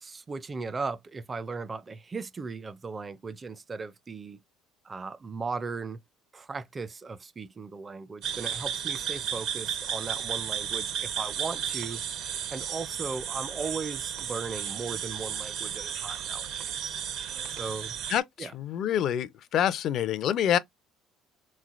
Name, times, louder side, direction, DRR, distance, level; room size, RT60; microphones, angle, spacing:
voice 1, 0.0-4.4 4.8-6.0 6.3-12.0 12.5-16.9 17.5-18.0 18.4-18.5, right 4 dB, 25° right, 0.5 m, -37 dB
sound 1, 8.2-18.2, right 8 dB, 65° right, 0.7 m, -34 dB
voice 2, 18.1-20.6, left 10 dB, 55° left, 0.4 m, -27 dB
3.6 x 3.1 x 2.4 m
cardioid pair, 110°, 0 cm